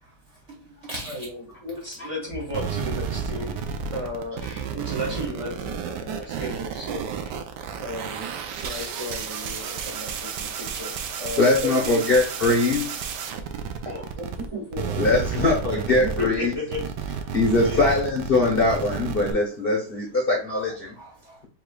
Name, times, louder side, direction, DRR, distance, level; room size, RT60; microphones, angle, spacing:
voice 1, 0.0-1.3 4.8-4.9 13.9-14.1 17.3-17.4 20.9-21.4, right 1 dB, 50° right, 1.1 m, -41 dB
voice 2, 1.0-3.6 3.9-4.4 4.7-7.1 7.7-12.1 13.8-17.3 17.6-17.9 20.3-20.6, left 1 dB, 20° right, 1.4 m, -34 dB
sound 1, 2.5-14.5 14.7-19.3, right 6 dB, 85° right, 1.2 m, -31 dB
voice 3, 11.4-13.0 15.0-16.5 17.3-20.9, left 2 dB, 45° left, 0.9 m, -22 dB
4.8 x 3.6 x 2.3 m
omnidirectional pair, 1.8 m